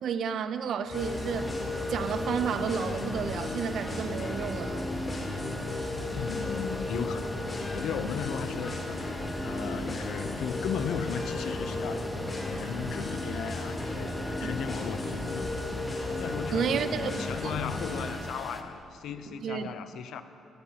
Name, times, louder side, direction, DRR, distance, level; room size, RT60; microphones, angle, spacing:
voice 1, 0.0-1.5 1.9-4.9 14.4-14.5 16.5-17.5 19.3-19.7, right 7 dB, 65° right, 0.6 m, -32 dB
sound 1, 0.9-18.1, left 2 dB, 30° left, 3.2 m, -34 dB
sound 2, 0.9-18.6, left 1 dB, 10° left, 1.1 m, -41 dB
voice 2, 6.1-9.0 9.4-12.1 12.4-14.1 14.4-15.6 16.2-20.2, left 8 dB, 75° left, 0.6 m, -36 dB
17.0 x 14.5 x 2.9 m
cardioid pair, 90°, 0 cm